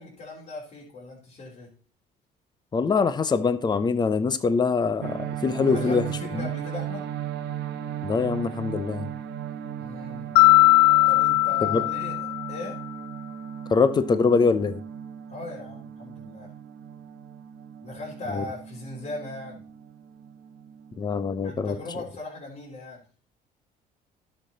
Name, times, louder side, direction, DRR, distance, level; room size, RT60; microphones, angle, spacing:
voice 1, 0.0-1.7 5.7-7.1 9.8-10.3 11.1-12.8 15.3-16.5 17.8-19.6 21.4-23.0, left 2 dB, 45° left, -5 dB, 3.8 m, -38 dB
voice 2, 2.7-6.0 6.3-6.5 8.0-9.1 11.7-11.8 13.7-14.8 18.3-18.4 21.0-21.8, left 5 dB, 25° left, 13 dB, 0.7 m, -23 dB
sound 1, 5.0-21.9, right 9 dB, 80° right, 0.9 m, -37 dB
Mallet percussion, 10.4-12.7, left 21 dB, 85° left, 0.4 m, -19 dB
11.5 x 6.7 x 4.1 m, 0.40 s
cardioid pair, 110°, 17 cm